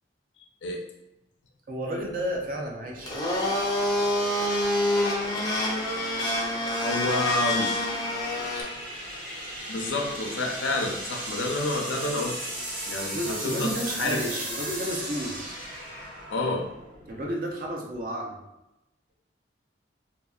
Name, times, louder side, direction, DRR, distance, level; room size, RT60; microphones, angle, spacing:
voice 1, 1.7-3.1 13.1-15.3 17.1-18.4, equal, 45° right, 0 dB, 0.5 m, -31 dB
sound 1, 1.9-17.3, right 1 dB, 85° right, 1.3 m, -38 dB
Domestic sounds home sounds, 3.0-8.6, left 1 dB, 20° left, 0.4 m, -27 dB
voice 2, 6.8-7.7 9.7-12.4 12.8-14.2 16.3-16.6, left 2 dB, 75° left, 2 dB, 0.5 m, -29 dB
2.7 x 2.7 x 2.3 m, 0.91 s
head